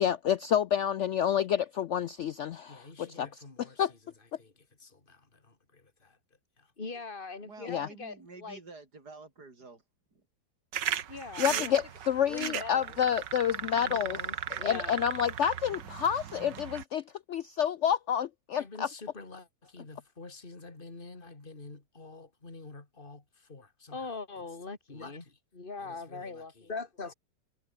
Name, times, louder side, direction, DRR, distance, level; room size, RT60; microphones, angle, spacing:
voice 1, 0.0-3.9 7.7-7.9 11.4-14.2 14.6-17.0 17.3-18.9, left 9 dB, 80° left, 0.6 m, -29 dB
voice 2, 2.7-3.8 4.4-4.5 4.8-6.2 6.6-8.6 11.1-11.7 12.3-13.0 13.7-15.1 18.5-27.1, left 3 dB, 30° left, 3.1 m, -43 dB
voice 3, 7.4-9.8 10.1-10.2, right 3 dB, 65° right, 5.2 m, -50 dB
sound 1, 10.7-16.8, right 9 dB, 85° right, 1.9 m, -36 dB
omnidirectional pair, 1.8 m